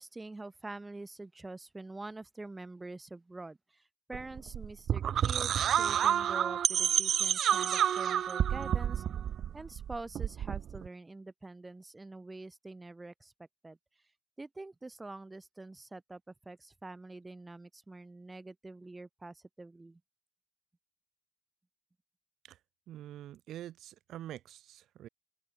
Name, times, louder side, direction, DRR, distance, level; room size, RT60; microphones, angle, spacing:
voice 1, 0.0-3.8 4.1-9.0 9.5-13.3 13.6-13.8 14.4-20.0, right 2 dB, 15° right, 2.3 m, -46 dB
sound 1, 4.1-10.9, right 9 dB, 60° right, 0.3 m, -29 dB
voice 2, 22.9-25.1, right 12 dB, 80° right, 1.0 m, -46 dB
open air
cardioid pair, 135°, 0 cm